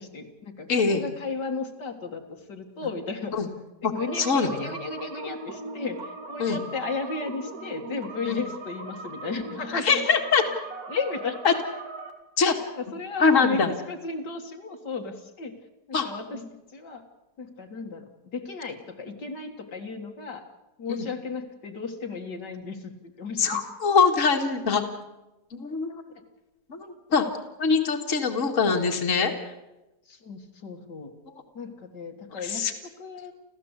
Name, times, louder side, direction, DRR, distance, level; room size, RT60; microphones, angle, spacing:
voice 1, 0.0-3.4 3.8-9.9 10.9-11.4 12.8-13.6 13.9-15.5 16.0-16.4 16.7-17.0 17.4-18.1 18.3-20.5 20.8-23.6 30.1-31.1 31.5-33.3, left 4 dB, 75° left, 3 dB, 2.6 m, -34 dB
voice 2, 0.7-1.0 2.8-2.9 3.3-3.5 3.8-4.5 6.4-6.6 8.3-8.4 9.7-10.4 11.4-11.5 12.4-12.5 13.2-13.7 15.9-16.1 20.9-21.1 23.4-24.8 25.5-26.0 26.7-27.2 27.6-29.3 32.3-32.7, left 5 dB, 45° left, 3 dB, 2.4 m, -23 dB
sound 1, 4.0-12.1, right 3 dB, 60° right, 2.7 m, -39 dB
30.0 x 14.0 x 8.2 m, 1.0 s
omnidirectional pair, 1.9 m